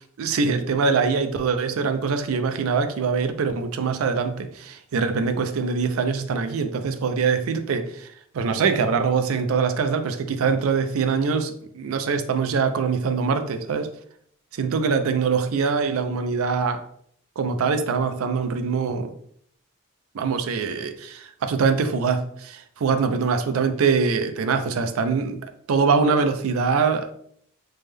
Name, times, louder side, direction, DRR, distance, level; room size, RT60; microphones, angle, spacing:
voice 1, 0.2-8.1 8.3-13.9 14.5-16.8 17.4-19.1 20.1-27.1, right 5 dB, 85° right, 9 dB, 0.4 m, -23 dB
3.3 x 2.1 x 3.3 m, 0.65 s
head